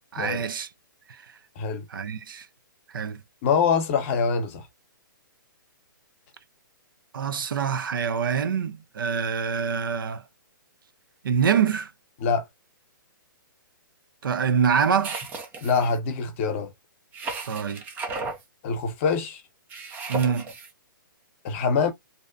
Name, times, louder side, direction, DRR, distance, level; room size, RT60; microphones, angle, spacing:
voice 1, 0.1-0.7 1.9-2.5 2.9-3.2 7.1-10.2 11.2-11.9 14.2-15.2 17.5-17.8 20.1-20.5, right 6 dB, 75° right, 0.6 m, -25 dB
voice 2, 3.4-4.7 12.2-12.4 15.6-16.7 18.6-19.4 21.4-21.9, left 5 dB, 40° left, 0.8 m, -24 dB
sound 1, 15.0-16.0 17.1-18.4 19.7-20.7, right 3 dB, 15° right, 0.4 m, -34 dB
2.7 x 2.1 x 2.4 m
hypercardioid pair, 150°, 11 cm